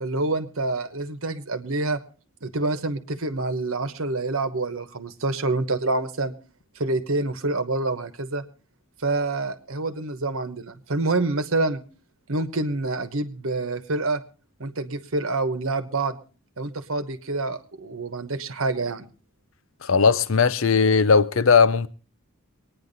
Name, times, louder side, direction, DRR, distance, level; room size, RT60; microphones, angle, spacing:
voice 1, 0.0-2.0 2.4-6.3 6.8-8.4 9.0-11.8 12.3-14.2 14.6-16.2 16.6-19.1, right 2 dB, 70° right, 1.2 m, -27 dB
voice 2, 19.8-21.9, left 5 dB, 65° left, 0.7 m, -18 dB
24.0 x 9.7 x 4.0 m
head